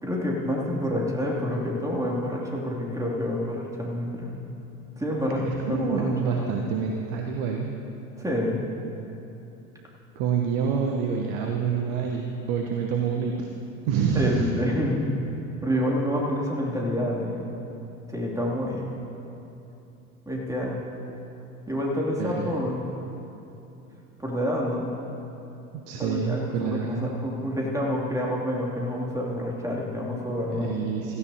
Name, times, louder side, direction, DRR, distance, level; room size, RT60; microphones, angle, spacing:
voice 1, 0.0-4.3 5.0-6.1 6.5-6.7 8.2-8.6 14.1-15.0 15.6-17.5 18.1-19.0 20.2-20.8 21.7-22.9 24.2-24.9 26.0-30.7, equal, 10° right, -3 dB, 2.7 m, -28 dB
voice 2, 5.3-7.7 10.1-13.5 13.8-14.5 22.2-22.5 25.9-27.1 30.5-31.2, right 6 dB, 55° right, 2 dB, 1.1 m, -27 dB
16.5 x 15.0 x 2.8 m, 2.9 s
figure-of-eight pair, 70°, 40 cm